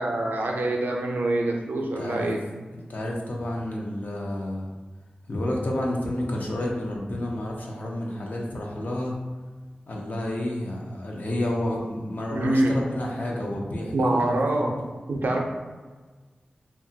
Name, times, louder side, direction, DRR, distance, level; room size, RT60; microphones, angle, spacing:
voice 1, 0.0-2.4 12.3-12.7 13.9-14.8 15.1-15.4, right 2 dB, 75° right, 1 dB, 0.4 m, -25 dB
voice 2, 2.0-2.3 2.9-4.7 5.3-9.2 9.9-14.8, left 1 dB, 60° left, -1 dB, 0.5 m, -30 dB
2.8 x 2.2 x 2.6 m, 1.3 s
wide cardioid pair, 85°, 3 cm